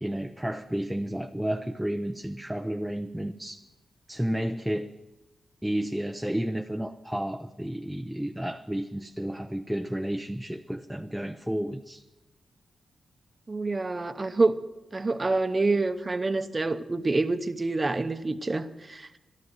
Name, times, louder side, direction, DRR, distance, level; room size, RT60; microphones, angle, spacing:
voice 1, 0.0-3.6 4.1-4.9 5.6-12.0, right 1 dB, 5° right, 6 dB, 0.6 m, -31 dB
voice 2, 13.5-14.6 14.9-19.1, right 3 dB, 35° right, 11 dB, 0.8 m, -27 dB
12.5 x 10.5 x 7.6 m, 1.0 s
cardioid pair, 65°, 0 cm